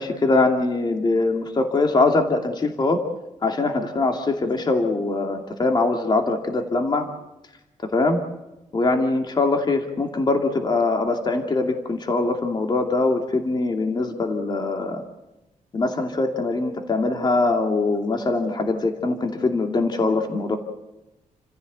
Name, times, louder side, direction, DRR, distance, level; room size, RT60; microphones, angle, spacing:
voice 1, 0.0-3.0 3.4-7.1 7.9-8.2 8.7-15.0 15.7-20.6, left 3 dB, 35° left, 4 dB, 2.6 m, -22 dB
30.0 x 15.5 x 8.3 m, 0.99 s
wide cardioid pair, 145°, 13 cm